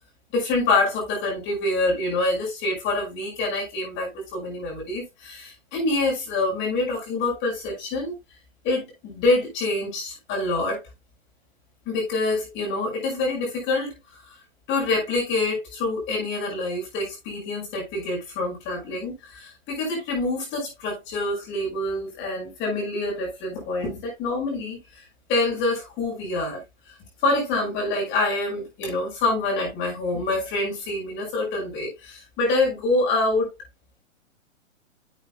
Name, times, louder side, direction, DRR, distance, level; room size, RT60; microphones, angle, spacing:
voice 1, 0.3-8.1 8.6-10.8 11.9-14.4 14.7-25.0 25.3-26.6 27.2-33.5, left 2 dB, 30° left, 5.8 m, -26 dB
11.0 x 8.1 x 2.4 m
hypercardioid pair, 125°, 39 cm